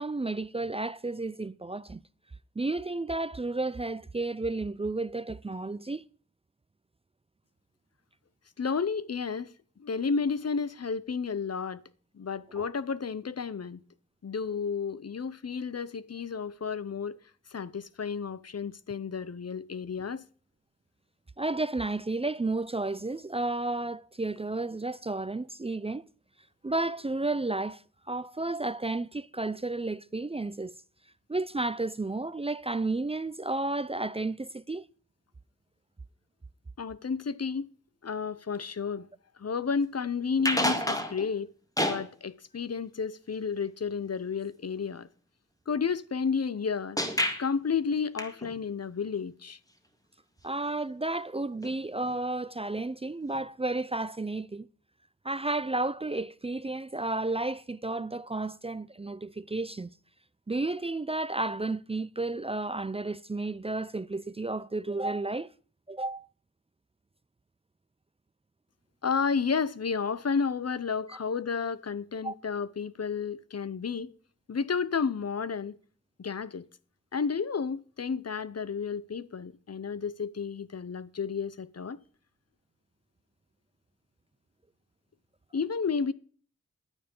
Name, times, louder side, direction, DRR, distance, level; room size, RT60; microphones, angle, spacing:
voice 1, 0.0-2.0 2.6-6.1 12.6-12.7 21.4-26.1 26.6-27.8 28.1-30.7 31.3-34.8 50.4-54.7 55.2-59.9 60.5-65.5 65.9-66.3 71.1-71.2 72.2-72.3, right 2 dB, 20° right, 0.4 m, -32 dB
voice 2, 8.6-9.5 9.8-11.8 12.1-13.8 14.2-17.2 17.5-20.2 36.8-37.7 38.0-39.1 39.4-41.5 41.8-45.1 45.7-47.0 47.4-49.6 69.0-74.1 74.5-75.8 76.2-76.7 77.1-82.0 85.5-86.1, left 5 dB, 60° left, 0.8 m, -31 dB
sound 1, 40.4-41.3 41.8-42.1 47.0-47.4 48.2-48.6 51.6-51.8 52.0-52.1 53.3-53.4, left 1 dB, 10° left, 2.0 m, -29 dB
11.0 x 9.3 x 5.3 m
wide cardioid pair, 65°, 29 cm